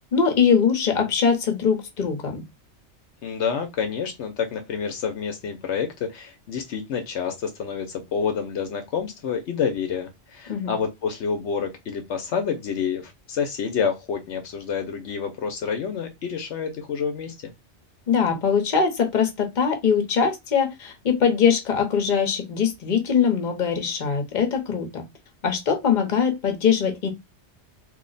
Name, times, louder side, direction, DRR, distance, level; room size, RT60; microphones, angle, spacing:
voice 1, 0.1-2.4 10.5-10.7 18.1-25.0 25.4-27.1, left 6 dB, 45° left, 0.9 m, -22 dB
voice 2, 3.2-17.5, left 6 dB, 75° left, 0.9 m, -28 dB
2.7 x 2.1 x 3.8 m
omnidirectional pair, 1.2 m